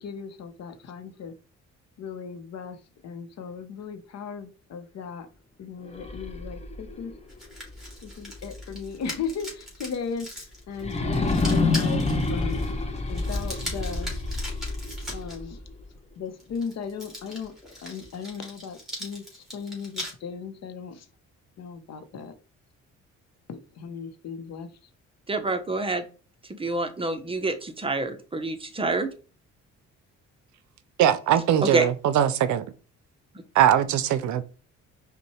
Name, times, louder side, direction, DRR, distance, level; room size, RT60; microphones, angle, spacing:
voice 1, 0.0-1.4 2.0-5.3 5.6-7.1 8.0-10.3 10.7-12.7 13.1-14.1 15.1-15.6 16.2-17.6 17.8-21.1 21.6-22.4 23.5-24.8, left 6 dB, 60° left, 0.7 m, -37 dB
sound 1, 5.8-8.8 9.3-9.4 10.7-15.8, left 3 dB, 20° left, 0.7 m, -28 dB
sound 2, 7.3-15.4 16.4-20.1, equal, ahead, 1.9 m, -40 dB
voice 2, 25.3-26.0 26.4-29.1 31.6-31.9, right 2 dB, 20° right, 0.7 m, -27 dB
voice 3, 31.0-32.7 33.5-34.4, right 10 dB, 70° right, 0.5 m, -21 dB
5.2 x 2.2 x 3.0 m
cardioid pair, 90°, 30 cm